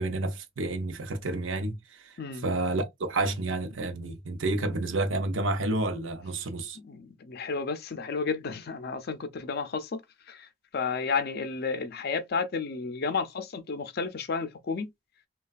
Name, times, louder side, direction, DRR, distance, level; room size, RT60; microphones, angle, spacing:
voice 1, 0.0-6.8, right 2 dB, 80° right, 0.6 m, -30 dB
voice 2, 6.9-10.0 10.3-10.5 10.7-14.9, left 5 dB, 55° left, 0.5 m, -32 dB
3.2 x 2.3 x 2.3 m
head